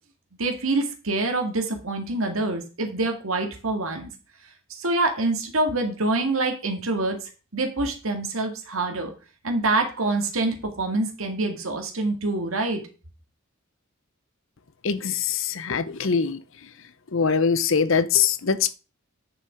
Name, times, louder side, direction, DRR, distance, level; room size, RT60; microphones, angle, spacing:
voice 1, 0.4-4.1 4.8-7.2 7.5-9.1 9.4-12.8, right 2 dB, 80° right, 2.0 m, -26 dB
voice 2, 14.8-16.4 17.1-18.7, left 6 dB, 65° left, 0.7 m, -23 dB
9.2 x 6.9 x 5.0 m
head